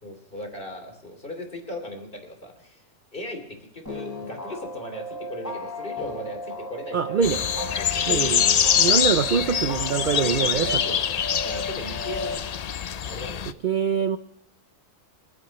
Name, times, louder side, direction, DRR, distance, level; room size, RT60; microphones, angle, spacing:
voice 1, 0.0-2.8 3.1-7.4 7.8-8.3 10.2-12.4 13.0-13.6, left 1 dB, 40° left, 4 dB, 3.2 m, -38 dB
sound 1, 3.9-12.4, left 2 dB, 10° left, 4.7 m, -35 dB
voice 2, 6.9-7.4 8.1-10.8 13.6-14.2, right 7 dB, 55° right, 11 dB, 0.6 m, -24 dB
sound 2, 7.2-13.5, left 8 dB, 65° left, 0.4 m, -24 dB
28.0 x 9.8 x 3.1 m, 0.82 s
omnidirectional pair, 1.3 m